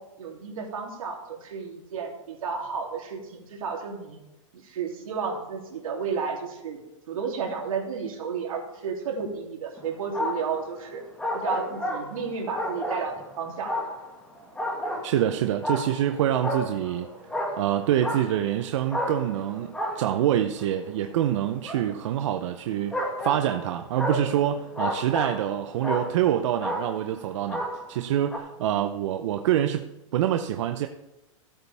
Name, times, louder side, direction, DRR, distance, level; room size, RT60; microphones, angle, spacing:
voice 1, 0.0-4.2 4.5-6.8 7.1-11.0 11.3-13.7, right 5 dB, 85° right, 0 dB, 3.0 m, -32 dB
sound 1, 9.8-10.6 11.2-13.3 13.7-15.2 15.6-16.1 16.4-18.5 18.9-20.8 21.6-21.8 22.9-25.6 25.8-26.3 26.6-27.1 27.5-28.0 28.3-28.4, left 1 dB, 5° left, 1.9 m, -31 dB
voice 2, 15.0-17.1 17.6-29.9 30.1-30.9, right 11 dB, 60° right, 7 dB, 0.7 m, -26 dB
15.0 x 8.7 x 3.5 m, 0.97 s
supercardioid pair, 150°, 17 cm